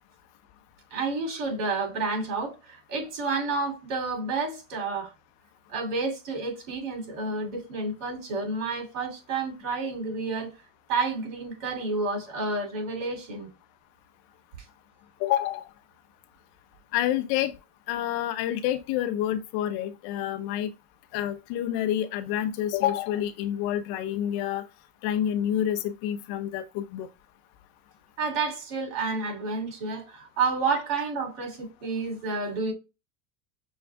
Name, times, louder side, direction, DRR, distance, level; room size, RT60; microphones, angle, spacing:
voice 1, 0.9-5.1 5.7-10.5 10.9-13.5 28.2-32.7, right 3 dB, 55° right, 2.8 m, -30 dB
voice 2, 15.2-15.6 16.9-17.5 17.9-20.7 21.1-24.6 25.0-27.1, left 11 dB, 50° left, 0.6 m, -28 dB
6.3 x 2.3 x 3.3 m
supercardioid pair, 115°, 47 cm